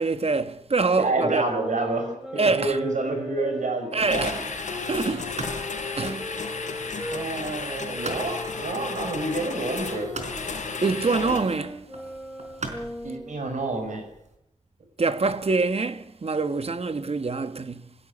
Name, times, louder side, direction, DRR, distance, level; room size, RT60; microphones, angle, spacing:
voice 1, 0.0-1.4 2.4-2.8 3.9-4.4 4.9-5.5 6.0-6.2 10.8-11.9 15.0-17.9, right 3 dB, 55° right, 1.2 m, -25 dB
voice 2, 1.0-2.1 2.3-4.4 6.0-6.3 7.1-10.1 13.0-14.0, right 2 dB, 90° right, 6.2 m, -28 dB
sound 1, 1.4-7.2 7.9-13.4, left 2 dB, 5° right, 5.5 m, -38 dB
sound 2, 4.0-11.6, left 4 dB, 90° left, 4.6 m, -33 dB
sound 3, 4.4-14.4, right 3 dB, 70° right, 4.4 m, -43 dB
20.5 x 16.5 x 9.8 m
wide cardioid pair, 75°, 12 cm